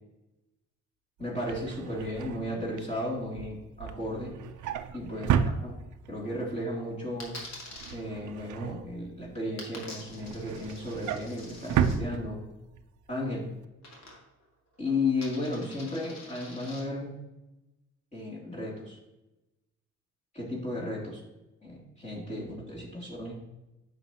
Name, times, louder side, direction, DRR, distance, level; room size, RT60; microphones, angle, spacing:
voice 1, 1.2-4.3 4.9-5.8 6.1-7.3 7.9-12.4 13.1-13.4 14.8-17.1 18.1-19.0 20.3-21.2 21.6-23.3, left 2 dB, 25° left, -6 dB, 3.0 m, -34 dB
Drawer open or close, 1.2-6.2 6.6-6.9 7.2-9.4 9.8-12.8 13.2-13.4 13.6-13.7, right 8 dB, 75° right, 0.6 m, -33 dB
Coin (dropping), 7.2-7.9 9.6-12.0 13.8-14.5 14.7-16.8, left 2 dB, 60° left, 2.4 m, -46 dB
9.4 x 6.7 x 3.0 m, 0.97 s
cardioid pair, 90°, 30 cm